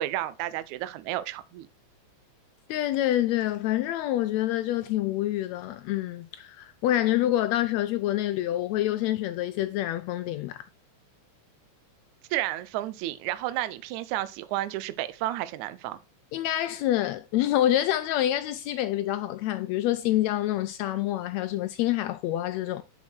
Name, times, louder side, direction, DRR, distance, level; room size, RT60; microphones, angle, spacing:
voice 1, 0.0-1.7 12.3-16.0, right 14 dB, 75° right, 1.9 m, -31 dB
voice 2, 2.7-10.7 16.3-22.8, left 13 dB, 85° left, 1.5 m, -27 dB
7.1 x 6.3 x 4.4 m
omnidirectional pair, 3.6 m